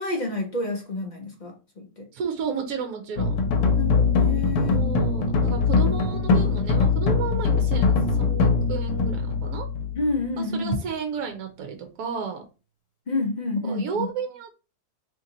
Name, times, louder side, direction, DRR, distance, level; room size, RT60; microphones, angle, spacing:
voice 1, 0.0-2.1 3.6-4.8 10.0-10.8 13.1-14.1, left 2 dB, 50° left, 1 dB, 0.5 m, -29 dB
voice 2, 2.1-3.4 4.7-9.7 10.4-12.4 13.6-14.5, right 6 dB, 75° right, 5 dB, 1.1 m, -32 dB
sound 1, 3.2-10.4, left 4 dB, 80° left, 1.1 m, -22 dB
2.9 x 2.8 x 3.8 m, 0.32 s
omnidirectional pair, 1.7 m